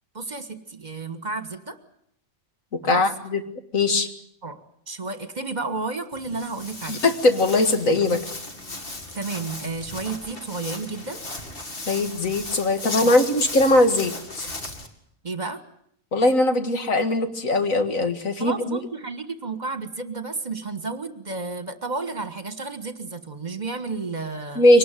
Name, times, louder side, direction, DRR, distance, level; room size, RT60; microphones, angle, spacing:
voice 1, 0.1-1.8 2.8-3.0 4.4-4.6 4.9-7.0 9.1-11.2 13.0-13.2 15.2-15.6 18.4-24.6, right 3 dB, 30° right, 10 dB, 1.6 m, -32 dB
voice 2, 2.8-3.4 3.7-4.1 6.9-8.2 11.9-14.5 16.1-18.8 24.6-24.8, left 2 dB, 70° left, 7 dB, 2.3 m, -20 dB
Walk footsteps, 6.1-14.9, left 2 dB, 40° left, 2.6 m, -36 dB
24.0 x 19.5 x 9.2 m, 0.71 s
omnidirectional pair, 1.4 m